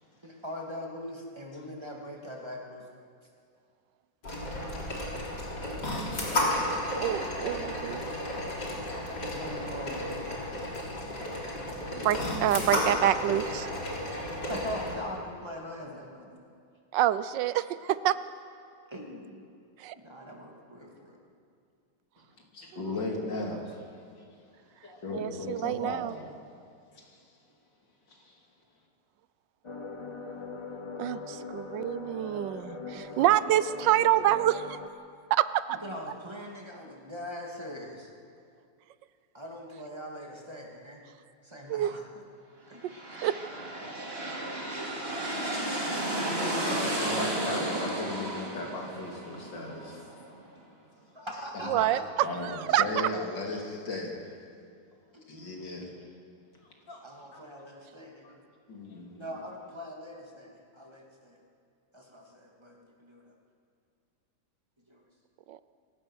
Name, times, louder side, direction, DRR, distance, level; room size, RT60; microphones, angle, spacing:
voice 1, 0.2-2.8 6.9-7.2 9.2-10.2 14.4-16.4 17.9-18.0 18.9-19.4 19.9-21.2 32.9-33.3 35.8-38.1 39.3-41.0 41.4-42.1 42.7-42.8 44.8-45.0 45.9-48.0 51.1-52.1 55.1-55.4 57.0-58.4 59.1-61.4 61.9-63.3 64.9-65.0, equal, 15° right, -1 dB, 2.5 m, -41 dB
sound 1, 4.2-15.0, left 1 dB, 70° left, 4.1 m, -33 dB
voice 2, 7.0-8.0 12.0-13.7 16.9-18.2 19.8-19.9 25.1-26.1 31.0-34.8 35.3-35.8 41.7-42.0 42.8-42.9 43.2-43.4 51.7-52.9 65.5-65.6, right 12 dB, 85° right, 15 dB, 1.3 m, -27 dB
voice 3, 22.5-23.9 24.8-26.3 27.0-27.2 28.1-28.4 46.6-50.1 51.6-51.9 52.2-54.4 55.3-55.9 56.9-57.0 57.3-57.4 58.2-58.3 58.7-59.3, left 2 dB, 85° left, 0 dB, 3.6 m, -37 dB
sound 2, 29.6-34.9, left 4 dB, 25° left, 0.6 m, -41 dB
sound 3, 42.7-50.4, right 1 dB, 35° right, 2.8 m, -33 dB
26.5 x 16.0 x 6.4 m, 2.3 s
omnidirectional pair, 1.9 m